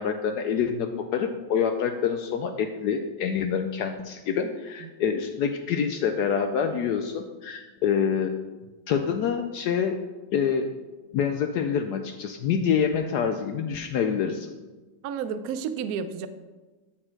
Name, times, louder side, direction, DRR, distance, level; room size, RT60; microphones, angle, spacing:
voice 1, 0.0-8.3 8.9-9.9 10.3-10.7 11.1-14.5, left 7 dB, 70° left, 6 dB, 1.0 m, -26 dB
voice 2, 15.0-16.3, right 7 dB, 85° right, 11 dB, 0.8 m, -31 dB
13.0 x 4.4 x 4.5 m, 1.2 s
omnidirectional pair, 2.1 m